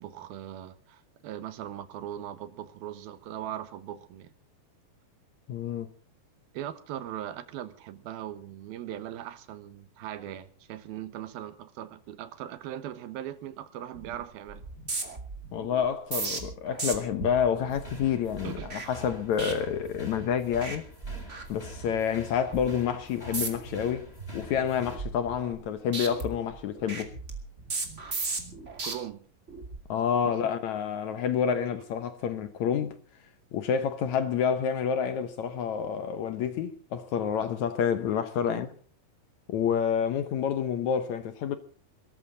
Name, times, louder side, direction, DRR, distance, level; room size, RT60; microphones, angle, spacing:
voice 1, 0.0-4.3 6.5-14.6 18.4-18.7 28.8-29.3 30.3-30.4 38.4-38.7, right 11 dB, 90° right, 3.1 m, -39 dB
voice 2, 5.5-5.9 15.5-20.8 21.5-24.1 24.3-27.1 29.9-33.0 33.5-38.7 39.5-41.6, left 8 dB, 65° left, 2.0 m, -28 dB
sound 1, 13.9-14.2 14.5-20.2 20.5-20.8 21.0-22.0 22.4-22.7 23.2-23.8 24.2-25.7 25.9-28.9 29.5-29.8, right 3 dB, 25° right, 2.1 m, -37 dB
sound 2, 17.6-25.0, left 1 dB, 15° left, 5.3 m, -46 dB
23.5 x 14.0 x 3.9 m
omnidirectional pair, 4.2 m